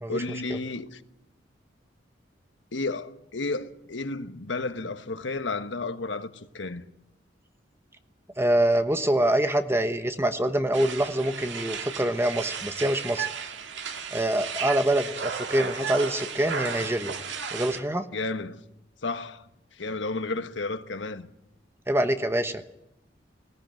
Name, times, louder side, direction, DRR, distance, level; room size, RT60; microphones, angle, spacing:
voice 1, 0.1-1.0 2.7-6.8 18.1-18.6 19.0-19.4 19.7-21.3, left 3 dB, 85° left, 1.3 m, -32 dB
voice 2, 8.4-13.3 14.1-17.1 17.5-18.1 21.9-22.6, right 1 dB, 15° right, 1.1 m, -25 dB
sound 1, 10.7-17.8, right 6 dB, 85° right, 1.8 m, -34 dB
19.5 x 17.5 x 9.0 m
head